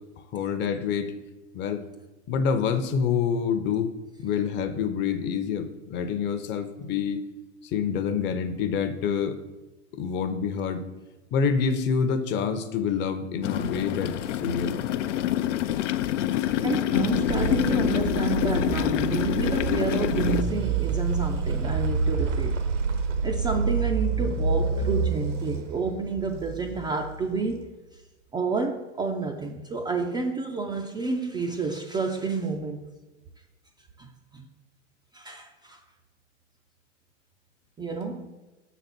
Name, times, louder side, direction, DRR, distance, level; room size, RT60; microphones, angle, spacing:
voice 1, 0.3-1.1 1.5-1.8 2.3-3.9 4.2-7.2 7.6-9.4 9.9-10.8 11.3-14.8, left 6 dB, 30° left, 10 dB, 0.7 m, -27 dB
sound 1, 13.4-20.4, left 12 dB, 75° left, 0.5 m, -26 dB
voice 2, 16.6-22.7 23.2-27.7 28.3-32.8 34.0-34.5 35.1-35.8 37.8-38.4, right 4 dB, 10° right, 1 dB, 0.4 m, -30 dB
sound 2, 16.7-27.5, right 4 dB, 80° right, 1.1 m, -28 dB
6.5 x 4.1 x 6.0 m, 1.1 s
hypercardioid pair, 110°, 37 cm